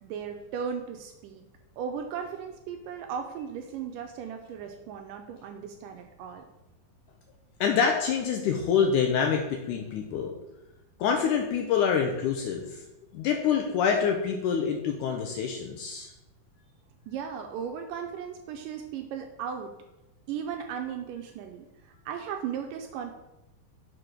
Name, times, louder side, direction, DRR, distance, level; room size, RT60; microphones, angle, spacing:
voice 1, 0.0-1.4 1.8-6.4 17.1-19.7 20.3-23.1, right 7 dB, 80° right, 5 dB, 2.0 m, -36 dB
voice 2, 7.6-10.3 11.0-12.8 13.1-16.1, left 7 dB, 80° left, 3 dB, 1.8 m, -26 dB
6.0 x 4.6 x 5.0 m, 0.95 s
omnidirectional pair, 4.1 m